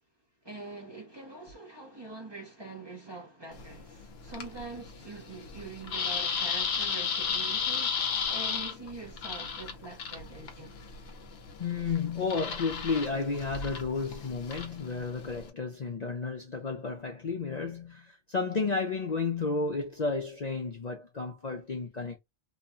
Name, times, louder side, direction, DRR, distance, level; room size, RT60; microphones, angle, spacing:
voice 1, 0.4-10.7, right 3 dB, 25° right, 0.8 m, -44 dB
sound 1, 3.5-15.5, left 6 dB, 65° left, 0.9 m, -35 dB
voice 2, 11.6-22.2, left 4 dB, 45° left, 0.6 m, -32 dB
3.0 x 2.2 x 2.5 m
omnidirectional pair, 1.2 m